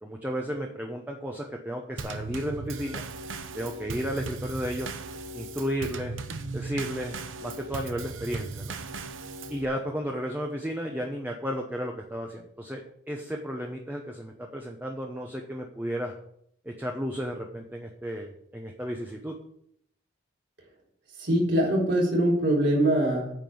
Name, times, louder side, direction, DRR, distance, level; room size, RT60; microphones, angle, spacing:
voice 1, 0.0-3.0 3.5-4.9 5.3-6.1 6.5-8.8 9.5-12.8 13.1-16.1 16.6-19.3, equal, 10° right, 1 dB, 0.9 m, -33 dB
Drum kit / Snare drum / Bass drum, 2.0-9.7, right 3 dB, 90° right, 0.8 m, -37 dB
voice 2, 21.2-23.3, right 1 dB, 65° right, -3 dB, 3.8 m, -23 dB
9.2 x 5.3 x 7.7 m, 0.70 s
head